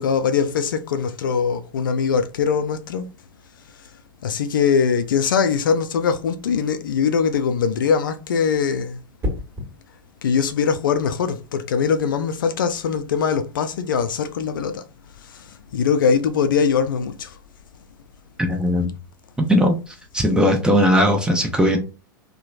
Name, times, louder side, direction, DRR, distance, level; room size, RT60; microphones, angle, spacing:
voice 1, 0.0-3.1 4.2-9.0 10.2-14.8 15.3-17.4, left 6 dB, 70° left, 0.4 m, -22 dB
sound 1, 9.2-9.7 11.7-12.0, left 2 dB, 25° right, 1.2 m, -29 dB
voice 2, 18.4-19.0 19.4-21.8, equal, 5° right, 0.7 m, -19 dB
2.9 x 2.1 x 2.4 m
figure-of-eight pair, 95°, 11 cm